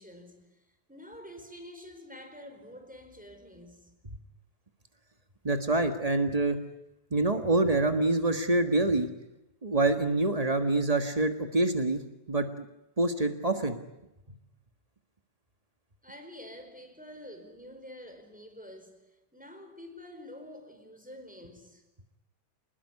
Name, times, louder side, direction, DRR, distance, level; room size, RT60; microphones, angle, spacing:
voice 1, 0.0-3.9 16.0-21.8, left 1 dB, ahead, 4.6 m, -48 dB
voice 2, 5.4-6.6 7.1-9.1 9.6-12.0 12.3-12.6 13.0-13.8, right 2 dB, 45° right, 0.5 m, -26 dB
28.0 x 20.5 x 9.8 m
omnidirectional pair, 3.6 m